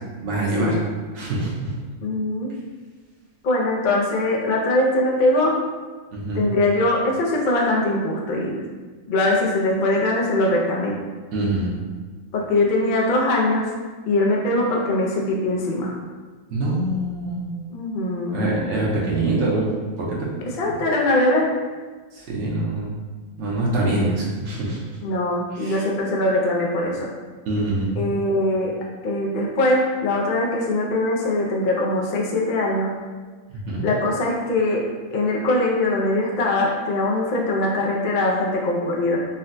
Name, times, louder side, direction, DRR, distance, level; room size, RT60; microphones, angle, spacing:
voice 1, 0.2-0.8 1.1-1.7 6.1-6.4 11.3-11.7 16.5-17.5 18.3-20.3 22.1-22.9 23.4-24.8 25.6-25.8 27.5-28.0 33.7-33.9, right 2 dB, 60° right, -4 dB, 0.9 m, -24 dB
voice 2, 2.0-2.5 3.4-5.6 6.3-8.6 9.1-11.0 12.3-13.7 14.1-15.9 17.7-18.5 20.4-21.5 25.0-27.1 28.0-28.7 29.0-32.9 33.8-34.8 35.1-39.2, left 2 dB, 85° left, -2 dB, 0.4 m, -22 dB
3.9 x 2.1 x 2.5 m, 1.4 s
omnidirectional pair, 1.5 m